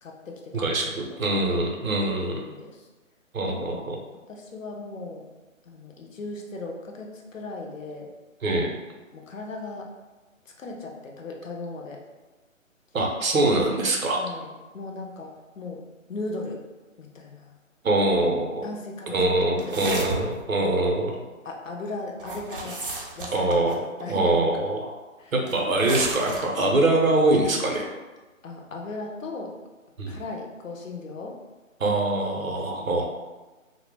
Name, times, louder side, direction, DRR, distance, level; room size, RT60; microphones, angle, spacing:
voice 1, 0.0-0.7 1.2-1.6 2.2-2.9 3.5-3.8 4.3-5.2 5.6-8.1 9.1-9.9 10.6-12.0 14.1-15.8 16.1-16.6 17.0-17.5 18.6-19.4 19.6-20.2 20.6-20.8 21.4-22.8 23.1-23.5 24.0-24.5 25.2-25.3 28.4-29.6 30.1-31.4 32.8-33.0, left 3 dB, 70° left, 0 dB, 0.7 m, -37 dB
voice 2, 0.5-2.4 3.3-4.0 8.4-8.7 12.9-14.2 17.8-18.6 19.1-21.2 23.3-23.8 24.1-24.9 25.3-27.8 30.0-30.2 31.8-33.1, right 2 dB, 85° right, 0 dB, 0.7 m, -23 dB
sound 1, 19.6-20.4 22.2-23.9 25.5-26.4, right 2 dB, 45° right, 0.4 m, -33 dB
2.1 x 2.1 x 3.3 m, 1.2 s
figure-of-eight pair, 145°, 40 cm